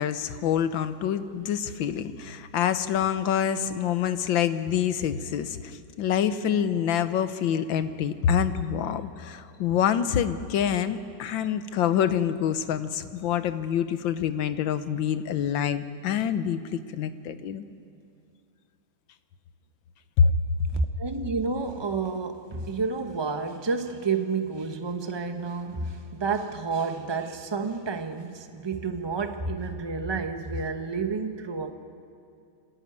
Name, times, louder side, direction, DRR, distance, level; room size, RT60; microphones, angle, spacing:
voice 1, 0.0-17.6 20.2-20.3, left 8 dB, 65° left, 11 dB, 1.5 m, -26 dB
voice 2, 20.7-31.7, right 4 dB, 35° right, 6 dB, 0.4 m, -30 dB
26.5 x 15.0 x 9.4 m, 2.5 s
omnidirectional pair, 2.4 m